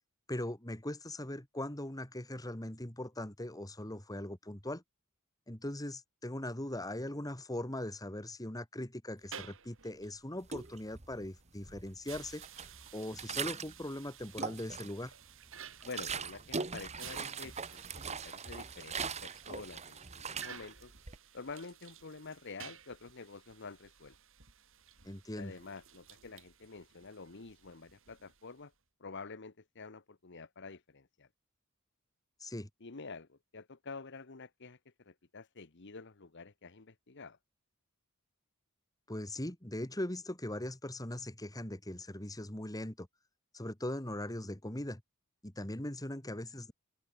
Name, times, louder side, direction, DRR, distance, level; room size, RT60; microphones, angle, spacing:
voice 1, 0.3-4.8 5.5-15.1 25.0-25.5 32.4-32.7 39.1-43.1 43.5-45.0 45.4-46.7, left 1 dB, 15° left, 2.4 m, -40 dB
sound 1, 9.1-28.7, right 9 dB, 65° right, 5.0 m, -54 dB
sound 2, 10.4-11.3 11.6-13.8 14.2-15.1 15.5-21.2, right 5 dB, 30° right, 1.5 m, -41 dB
voice 2, 15.8-20.9 21.3-24.2 25.4-28.7 29.0-31.3 32.8-37.4, left 4 dB, 55° left, 1.2 m, -48 dB
open air
head